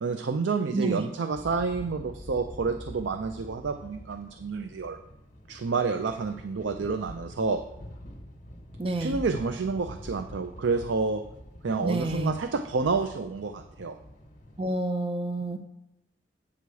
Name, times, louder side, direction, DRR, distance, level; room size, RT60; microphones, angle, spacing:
voice 1, 0.0-5.0 5.5-7.6 9.0-11.2 11.6-14.0, right 4 dB, 75° right, 8 dB, 0.5 m, -29 dB
voice 2, 0.7-1.0 8.8-9.2 11.8-12.3 14.6-15.6, right 2 dB, 30° right, 5 dB, 0.6 m, -29 dB
sound 1, 1.3-14.7, left 1 dB, 45° left, 1.2 m, -46 dB
8.5 x 4.7 x 6.9 m, 0.89 s
head